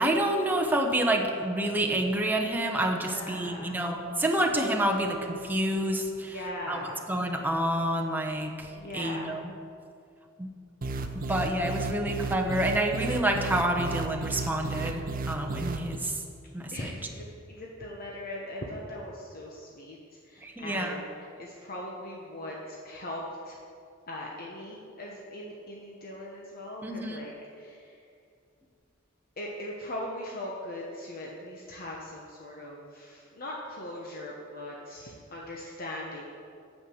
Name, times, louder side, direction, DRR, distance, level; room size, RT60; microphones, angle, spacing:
voice 1, 0.0-6.4 6.7-6.8 7.1-8.7 8.9-9.5 10.4-10.5 11.3-16.1 16.5-16.9 20.4-21.0 26.8-27.2, right 1 dB, 10° right, 1 dB, 0.9 m, -28 dB
voice 2, 2.9-3.8 6.2-7.0 8.7-9.4 16.7-20.0 20.2-23.6 24.1-27.8 29.4-36.2, left 1 dB, 45° left, -2 dB, 1.1 m, -40 dB
sound 1, 10.8-16.0, right 3 dB, 45° right, 0.6 m, -34 dB
8.9 x 7.7 x 6.3 m, 2.4 s
head